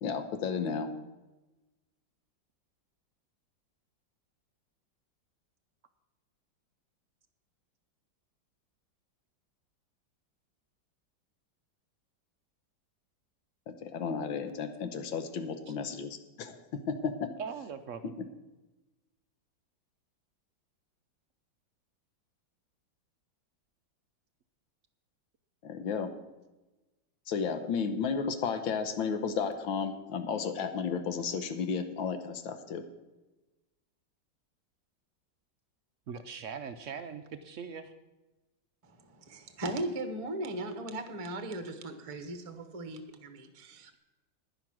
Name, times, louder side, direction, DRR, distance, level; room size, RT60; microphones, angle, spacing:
voice 1, 0.0-0.9 13.7-17.3 25.6-26.1 27.3-32.8, left 6 dB, 85° left, 8 dB, 1.7 m, -33 dB
voice 2, 17.4-18.1 36.1-37.9, right 6 dB, 75° right, 9 dB, 0.7 m, -41 dB
voice 3, 38.8-43.9, right 1 dB, 25° right, 8 dB, 0.8 m, -38 dB
10.5 x 10.5 x 6.1 m, 1.1 s
omnidirectional pair, 2.1 m